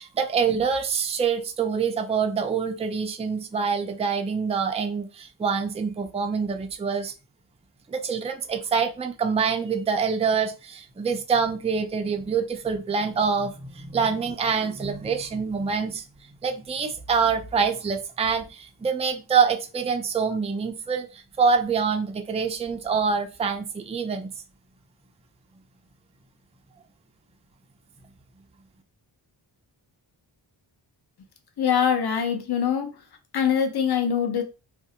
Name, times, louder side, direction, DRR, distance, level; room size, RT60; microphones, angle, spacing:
voice 1, 0.0-7.1 7.9-16.1 16.4-24.3, right 5 dB, 15° right, 6 dB, 0.3 m, -25 dB
voice 2, 31.6-32.9 33.3-34.4, left 7 dB, 50° left, 5 dB, 0.6 m, -23 dB
2.6 x 2.1 x 2.7 m, 0.30 s
wide cardioid pair, 45°, 50 cm